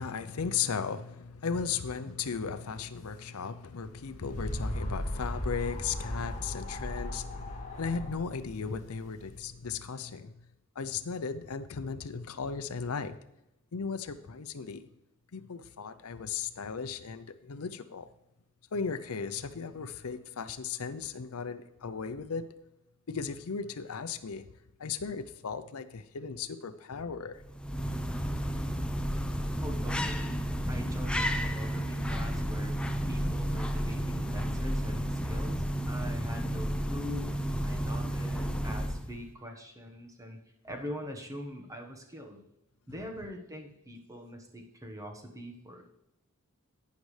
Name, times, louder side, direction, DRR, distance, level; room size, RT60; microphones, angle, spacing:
voice 1, 0.0-10.5 10.8-13.3 13.7-14.9 15.3-18.1 18.7-22.5 23.1-24.5 24.8-27.4, left 5 dB, 80° left, 11 dB, 0.6 m, -36 dB
sound 1, 3.8-9.4, left 1 dB, 35° left, 2.0 m, -37 dB
sound 2, 27.4-39.2, equal, 5° left, 0.5 m, -32 dB
voice 2, 29.6-30.4 30.7-42.4 42.9-45.9, equal, 15° right, 3 dB, 1.3 m, -43 dB
11.5 x 9.4 x 3.3 m, 0.90 s
head